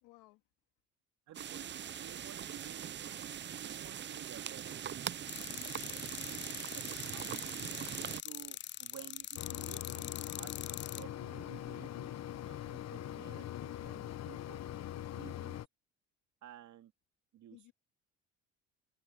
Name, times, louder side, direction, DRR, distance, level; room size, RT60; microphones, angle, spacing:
voice 1, 0.0-0.4 7.6-8.0 17.5-17.7, left 20 dB, 80° left, 2.6 m, -59 dB
sound 1, 1.3-8.2, right 9 dB, 35° right, 0.6 m, -42 dB
voice 2, 1.3-6.0 6.5-7.6 8.2-10.6 10.9-14.8 15.1-15.6 16.4-16.9 17.3-17.7, right 11 dB, 55° right, 3.0 m, -54 dB
sound 2, 5.3-11.0, left 11 dB, 35° left, 0.4 m, -43 dB
Mechanisms, 9.4-15.7, left 12 dB, 50° left, 1.1 m, -42 dB
open air
supercardioid pair, 80°, 33 cm